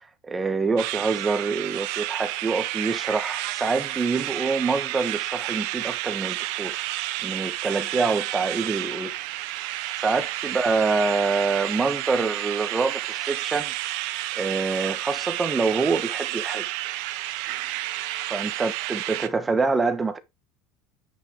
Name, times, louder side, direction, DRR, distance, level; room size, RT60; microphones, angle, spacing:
voice 1, 0.3-6.8 7.2-9.1 10.0-13.7 14.3-16.7 18.3-20.2, right 4 dB, 15° right, 1.2 m, -26 dB
sound 1, 0.8-19.3, right 16 dB, 65° right, 1.1 m, -31 dB
9.1 x 5.3 x 4.5 m
cardioid pair, 150°, 0 cm